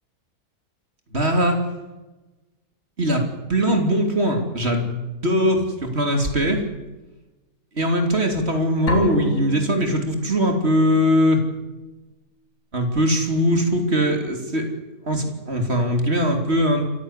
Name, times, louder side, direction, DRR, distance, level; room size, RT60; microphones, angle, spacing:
voice 1, 1.1-1.6 3.0-3.2 3.5-6.6 7.8-11.4 12.7-14.7 15.0-16.8, equal, 45° right, 4 dB, 3.6 m, -21 dB
sound 1, 8.9-10.7, left 1 dB, 90° left, 4.0 m, -30 dB
26.5 x 15.0 x 8.4 m, 1.1 s
omnidirectional pair, 1.6 m